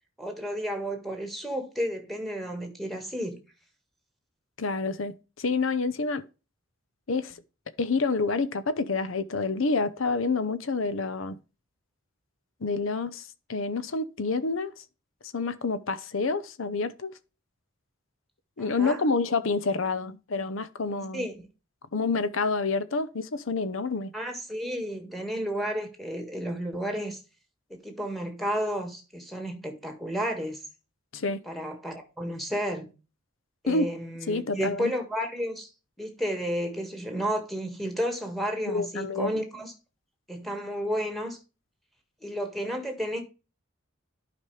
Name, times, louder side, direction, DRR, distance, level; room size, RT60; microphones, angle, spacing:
voice 1, 0.2-3.4 18.6-19.0 21.1-21.5 24.1-27.2 27.7-30.6 31.4-32.9 33.6-35.7 36.0-39.7 40.3-41.4 42.2-43.2, equal, ahead, 1.7 m, -32 dB
voice 2, 4.6-6.2 7.1-7.4 7.8-11.4 12.6-14.7 15.3-17.1 18.6-21.2 21.9-24.1 31.1-31.4 33.7-33.9 34.3-34.9 38.7-39.4, left 3 dB, 80° left, 0.8 m, -28 dB
11.5 x 5.2 x 3.3 m
head